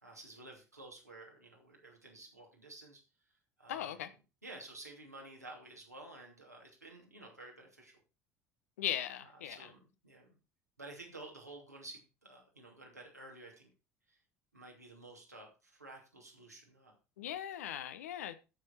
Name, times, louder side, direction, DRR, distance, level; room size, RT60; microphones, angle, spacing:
voice 1, 0.0-3.0 3.6-4.0 4.4-8.0 9.4-10.3 10.8-13.7 14.1-14.2 14.5-16.9, right 2 dB, 90° right, 2.8 m, -52 dB
voice 2, 3.7-4.1 8.8-9.6 17.2-18.4, left 11 dB, 70° left, 1.0 m, -38 dB
13.5 x 6.5 x 4.4 m
figure-of-eight pair, 65°, 8 cm